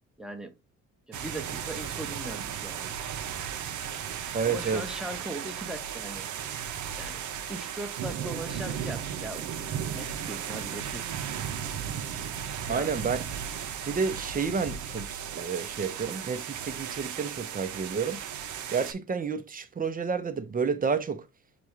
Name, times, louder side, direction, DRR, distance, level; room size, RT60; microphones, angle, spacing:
voice 1, 0.2-0.5 1.1-2.9 4.4-6.3 7.0-7.2 7.5-9.5 9.9-11.1 12.6-13.0, right 1 dB, ahead, 0.9 m, -39 dB
sound 1, 1.1-18.9, right 8 dB, 75° right, 0.7 m, -35 dB
voice 2, 4.3-4.8 12.7-13.2 13.8-18.2 18.7-21.2, right 5 dB, 30° right, 0.7 m, -30 dB
6.8 x 2.4 x 3.0 m
cardioid pair, 90°, 30 cm